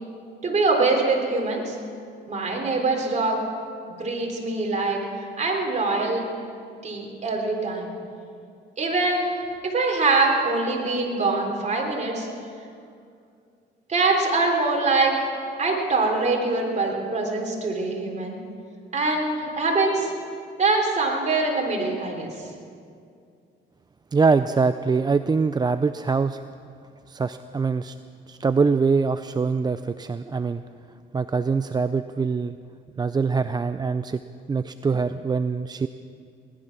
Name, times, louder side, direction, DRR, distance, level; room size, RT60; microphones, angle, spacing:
voice 1, 0.4-1.8 2.3-3.4 4.0-5.0 5.4-6.2 6.8-7.9 8.8-12.3 13.9-15.1 15.6-18.4 18.9-20.1 20.6-22.5, right 3 dB, 35° right, 0 dB, 3.6 m, -23 dB
voice 2, 24.1-26.4 27.1-27.9 28.3-30.6 31.1-32.5 33.0-34.2 34.5-35.9, right 4 dB, 20° right, 11 dB, 0.4 m, -23 dB
18.5 x 11.5 x 6.0 m, 2.3 s
cardioid pair, 90°, 20 cm